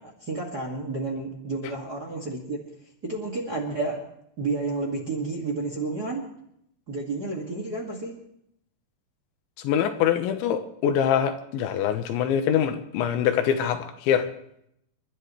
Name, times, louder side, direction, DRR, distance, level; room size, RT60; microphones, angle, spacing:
voice 1, 0.0-2.6 3.0-4.0 4.4-6.3 6.9-8.2, right 3 dB, 35° right, 0 dB, 1.7 m, -31 dB
voice 2, 9.6-14.3, left 9 dB, 90° left, 8 dB, 3.4 m, -24 dB
30.0 x 12.5 x 3.2 m, 0.74 s
omnidirectional pair, 5.2 m